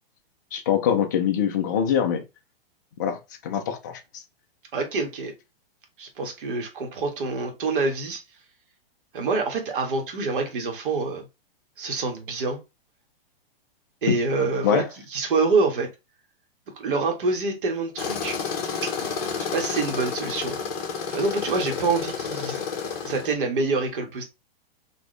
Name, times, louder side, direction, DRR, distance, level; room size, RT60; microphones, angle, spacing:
voice 1, 0.5-2.2 3.0-3.2 3.4-4.2 14.6-14.9, left 8 dB, 20° left, 0.4 m, -24 dB
voice 2, 4.7-5.3 6.0-8.2 9.1-11.3 11.8-12.6 14.0-14.8 15.1-15.9 16.7-18.4 18.8-18.9 19.4-20.6 21.1-22.6 23.0-24.2, right 3 dB, 60° right, 1.6 m, -26 dB
Tools, 18.0-23.3, left 6 dB, 40° left, 1.3 m, -30 dB
4.2 x 2.9 x 3.2 m
hypercardioid pair, 170°, 30 cm